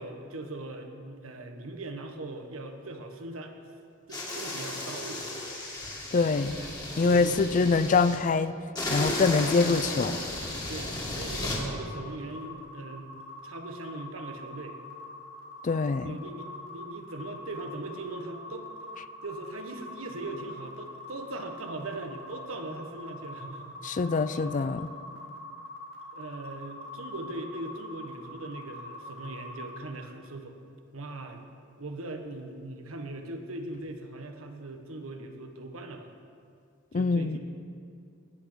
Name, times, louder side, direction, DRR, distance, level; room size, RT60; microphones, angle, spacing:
voice 1, 0.0-3.6 4.1-5.3 6.6-6.8 7.0-7.4 9.0-9.2 10.7-13.1 13.4-14.8 16.0-18.7 19.2-24.5 26.1-30.6 30.9-31.4 31.8-36.1 36.9-37.4, right 2 dB, 90° right, 5 dB, 1.2 m, -40 dB
sound 1, 4.1-8.2 8.7-11.6, left 2 dB, 20° left, 2.1 m, -34 dB
voice 2, 6.1-6.6 7.0-8.5 8.9-10.2 15.6-16.2 23.8-24.9 36.9-37.4, left 4 dB, 40° left, 14 dB, 0.4 m, -24 dB
sound 2, 11.5-29.8, left 1 dB, 85° left, 2.0 m, -44 dB
17.5 x 6.1 x 6.8 m, 2.4 s
head